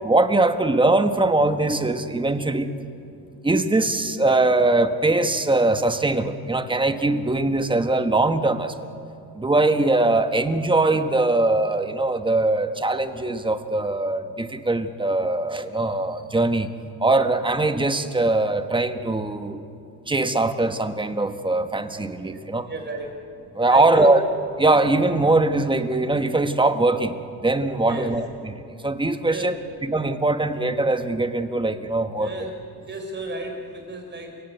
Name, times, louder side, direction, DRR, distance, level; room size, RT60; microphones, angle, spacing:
voice 1, 0.0-2.7 3.4-8.7 9.4-16.7 17.0-19.6 20.1-22.7 23.6-24.2 24.6-27.1 27.4-28.5 28.8-29.5 29.8-32.3, right 2 dB, 15° right, 8 dB, 1.3 m, -21 dB
voice 2, 22.7-23.2 23.7-24.2 27.8-28.1 29.2-29.6 32.2-32.5 32.8-34.4, right 2 dB, 30° right, 3 dB, 5.3 m, -33 dB
29.5 x 17.5 x 8.2 m, 2.6 s
cardioid pair, 120°, 39 cm